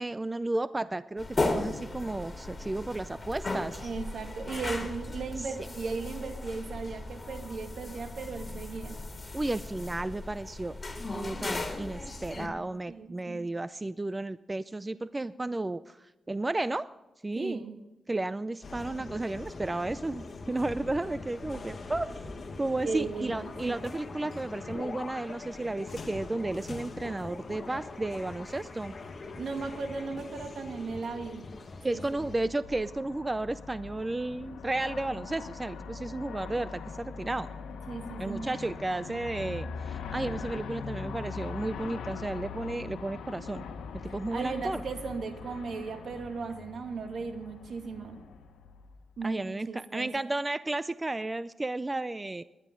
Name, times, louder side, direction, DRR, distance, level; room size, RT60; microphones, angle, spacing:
voice 1, 0.0-3.8 5.4-5.5 9.3-10.8 11.1-16.9 17.2-17.6 18.1-22.1 22.6-28.9 31.8-37.5 38.2-43.7 44.0-44.8 49.2-52.4, right 2 dB, 25° right, 14 dB, 0.5 m, -33 dB
sound 1, 1.2-12.5, left 2 dB, 30° left, 3.0 m, -36 dB
voice 2, 3.8-9.0 12.9-13.4 17.4-17.7 22.8-23.8 29.3-31.5 31.9-32.0 37.9-38.6 44.3-48.2 49.2-50.1, right 4 dB, 70° right, 5 dB, 2.2 m, -37 dB
sound 2, 18.6-32.4, left 3 dB, 50° left, 1.9 m, -42 dB
Aircraft, 31.9-49.2, left 5 dB, 90° left, 1.3 m, -42 dB
21.0 x 11.5 x 3.8 m, 1.0 s
cardioid pair, 60°, 0 cm